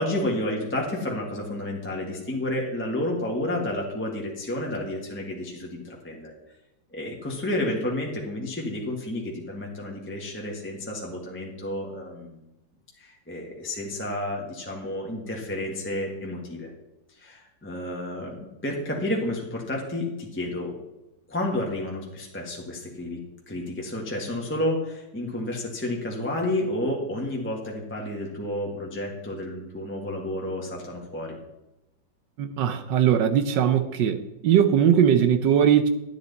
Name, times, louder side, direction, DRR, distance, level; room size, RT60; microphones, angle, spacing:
voice 1, 0.0-6.3 6.9-12.4 13.0-16.7 17.2-20.7 21.3-23.2 23.5-31.4, left 1 dB, 5° left, -2 dB, 1.4 m, -31 dB
voice 2, 32.4-34.2 34.4-35.9, right 9 dB, 75° right, 9 dB, 1.3 m, -20 dB
11.0 x 10.0 x 4.1 m, 0.94 s
omnidirectional pair, 2.0 m